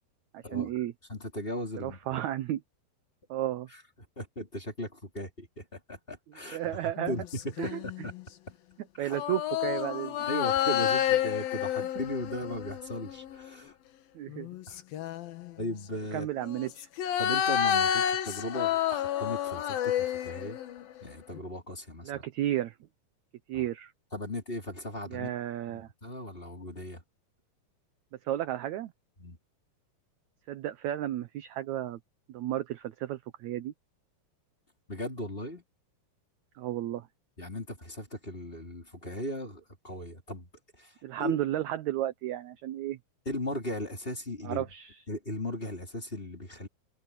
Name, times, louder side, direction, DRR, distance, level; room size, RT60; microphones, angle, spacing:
voice 1, 0.3-0.9 1.8-2.6 3.3-3.7 6.5-7.1 7.6-7.8 9.0-10.2 14.2-14.5 16.1-16.9 22.1-22.7 23.5-23.9 25.1-25.9 28.3-28.9 30.5-32.0 32.3-33.7 36.6-37.1 41.0-43.0 44.4-45.0, right 13 dB, 75° right, 1.7 m, -33 dB
voice 2, 1.1-2.2 3.7-3.8 4.2-8.1 9.0-9.2 10.3-13.7 14.7-14.8 15.6-16.3 17.2-20.6 21.0-22.2 23.5-23.6 24.1-25.4 25.7-27.0 29.2-29.4 34.9-35.6 37.4-40.5 40.8-41.3 43.3-44.7 45.1-46.7, left 1 dB, 15° left, 3.6 m, -37 dB
sound 1, 7.0-8.2 9.1-13.5 14.3-15.5 16.4-21.0 21.3-21.4, left 10 dB, 75° left, 3.3 m, -30 dB
open air
omnidirectional pair, 4.2 m